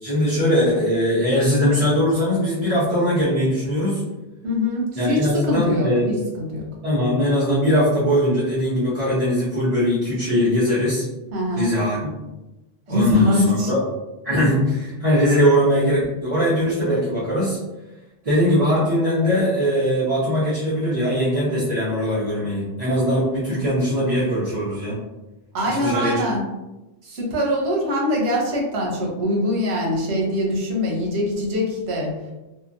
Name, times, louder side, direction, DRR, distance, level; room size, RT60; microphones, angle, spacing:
voice 1, 0.0-4.0 5.0-6.1 6.8-11.0 11.6-12.1 12.9-13.8 14.2-17.6 18.2-25.0 25.7-26.2, equal, 40° right, -11 dB, 0.8 m, -20 dB
voice 2, 4.4-6.7 11.3-11.7 12.9-13.7 14.4-14.5 25.5-26.4 27.0-32.1, left 1 dB, 80° right, -2 dB, 1.0 m, -23 dB
2.8 x 2.3 x 2.5 m, 1.0 s
omnidirectional pair, 1.1 m